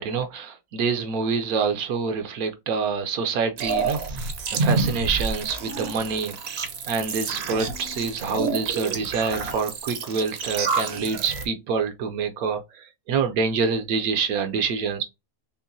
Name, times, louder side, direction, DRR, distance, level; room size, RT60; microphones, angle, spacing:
voice 1, 0.0-15.0, right 5 dB, 70° right, 1.1 m, -27 dB
sound 1, 3.6-11.4, right 4 dB, 50° right, 0.8 m, -28 dB
5.6 x 2.2 x 2.6 m
omnidirectional pair, 1.6 m